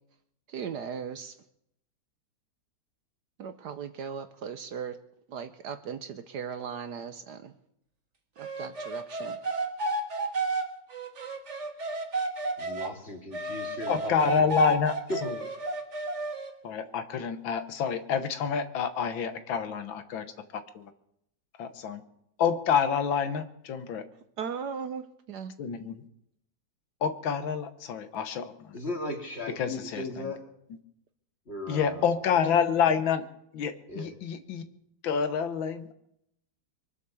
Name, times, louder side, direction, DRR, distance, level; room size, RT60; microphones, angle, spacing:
voice 1, 0.5-1.3 3.4-5.0 5.3-7.5 8.4-9.4 24.4-25.5 31.7-31.8, right 7 dB, 65° right, 10 dB, 1.2 m, -38 dB
sound 1, 8.4-12.9 13.3-16.5, right 2 dB, 40° right, 1.8 m, -32 dB
voice 2, 12.6-14.5 15.1-15.2 28.7-30.4 31.5-32.1 33.9-34.1, left 2 dB, 30° left, 2 dB, 2.8 m, -36 dB
voice 3, 13.9-15.0 15.2-15.3 16.6-20.2 20.5-20.9 21.6-22.0 22.4-24.0 25.6-26.0 27.0-28.7 29.6-30.2 31.7-33.2 33.5-34.6 35.0-36.0, left 7 dB, 75° left, 10 dB, 1.8 m, -28 dB
24.0 x 8.3 x 7.0 m, 0.77 s
omnidirectional pair, 2.1 m